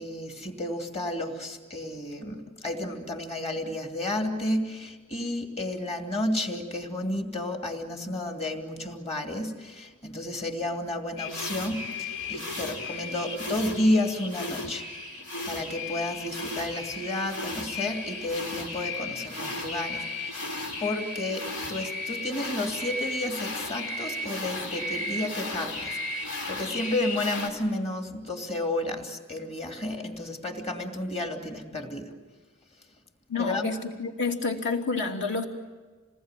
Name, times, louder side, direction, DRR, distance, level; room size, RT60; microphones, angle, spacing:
voice 1, 0.0-20.5 20.8-32.1 33.4-33.7, left 1 dB, 30° left, 3 dB, 2.8 m, -31 dB
sound 1, 11.2-27.5, left 2 dB, 90° left, 4.3 m, -35 dB
voice 2, 33.3-35.4, left 4 dB, 55° left, 2 dB, 2.9 m, -29 dB
28.0 x 20.0 x 9.1 m, 1.4 s
head